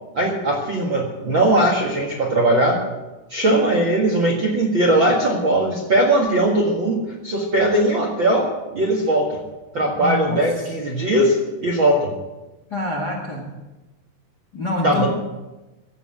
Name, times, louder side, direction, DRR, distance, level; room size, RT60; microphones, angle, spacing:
voice 1, 0.1-2.8 3.3-9.4 9.7-11.4 11.6-12.1 14.8-15.1, right 1 dB, 50° right, 0 dB, 1.4 m, -19 dB
voice 2, 10.0-10.5 12.7-13.5 14.5-15.1, left 2 dB, 45° left, 0 dB, 1.3 m, -26 dB
16.5 x 8.0 x 7.8 m, 1.1 s
omnidirectional pair, 4.9 m